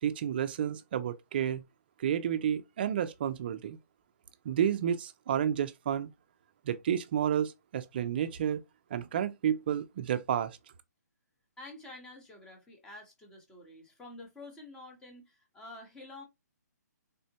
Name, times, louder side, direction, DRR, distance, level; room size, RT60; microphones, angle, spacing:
voice 1, 0.0-1.6 2.0-3.8 4.4-6.1 6.7-8.6 8.9-10.6, right 9 dB, 35° right, 0.3 m, -31 dB
voice 2, 11.6-16.2, left 2 dB, 5° left, 0.7 m, -49 dB
3.6 x 2.1 x 2.7 m
hypercardioid pair, 160°, 10 cm